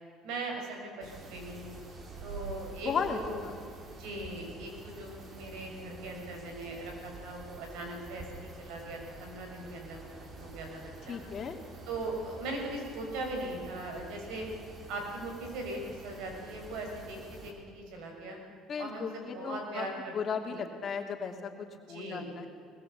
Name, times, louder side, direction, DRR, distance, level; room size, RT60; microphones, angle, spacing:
voice 1, 0.2-1.7 2.2-3.4 3.8-10.1 10.4-11.2 11.9-14.5 14.9-18.4 18.8-20.1 20.4-20.6 21.9-22.3, right 2 dB, 80° right, 2 dB, 6.6 m, -40 dB
sound 1, 1.0-17.5, right 2 dB, 40° right, 4.3 m, -48 dB
voice 2, 2.8-3.6 11.1-11.6 18.7-22.5, left 6 dB, 40° left, 3 dB, 2.8 m, -36 dB
20.5 x 20.5 x 8.4 m, 2.3 s
cardioid pair, 100°, 0 cm